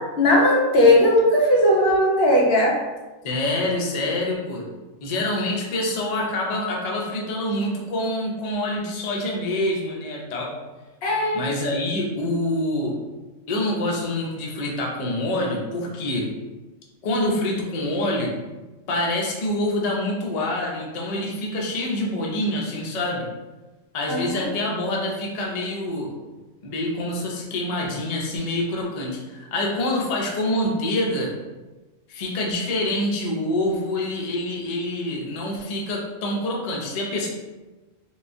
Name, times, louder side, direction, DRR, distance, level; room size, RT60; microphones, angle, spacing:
voice 1, 0.0-2.8 11.0-11.4 24.1-24.4, left 1 dB, 55° left, -3 dB, 0.8 m, -18 dB
voice 2, 3.2-4.6 5.0-10.5 11.3-12.9 13.5-16.3 17.0-18.4 18.9-23.3 23.9-26.1 26.6-31.4 32.1-37.3, left 1 dB, 80° left, -1 dB, 0.3 m, -26 dB
3.6 x 2.2 x 2.5 m, 1.2 s
omnidirectional pair, 1.4 m